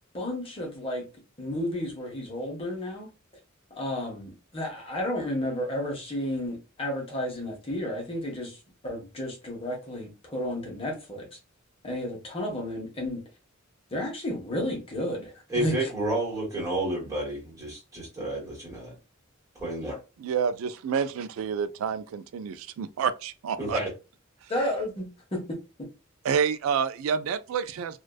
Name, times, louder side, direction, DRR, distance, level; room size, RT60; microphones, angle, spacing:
voice 1, 0.1-1.1 1.4-3.1 3.7-8.6 8.8-11.3 11.8-13.2 13.9-15.7 24.5-25.9, left 1 dB, 25° left, 0.7 m, -32 dB
voice 2, 15.5-18.9 19.5-20.0 23.6-23.9, right 1 dB, 15° right, 1.4 m, -30 dB
voice 3, 20.2-23.8 26.2-28.0, right 7 dB, 75° right, 0.3 m, -28 dB
2.5 x 2.2 x 2.2 m
head